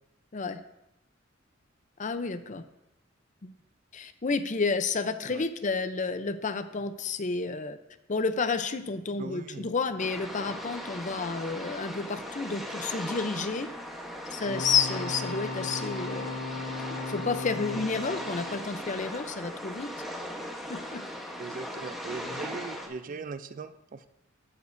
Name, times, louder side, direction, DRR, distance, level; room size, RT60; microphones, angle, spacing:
voice 1, 2.0-2.6 3.4-3.5 3.9-7.8 8.1-13.7 14.3-16.4 17.1-19.9 20.7-21.0, left 4 dB, 40° left, 10 dB, 0.6 m, -30 dB
voice 2, 9.2-9.7 21.4-24.1, right 4 dB, 40° right, 13 dB, 0.4 m, -39 dB
sound 1, 10.0-22.9, equal, ahead, 1.0 m, -39 dB
sound 2, 14.4-19.4 22.2-22.4, left 2 dB, 55° left, 1.5 m, -37 dB
16.0 x 7.0 x 2.6 m, 0.86 s
head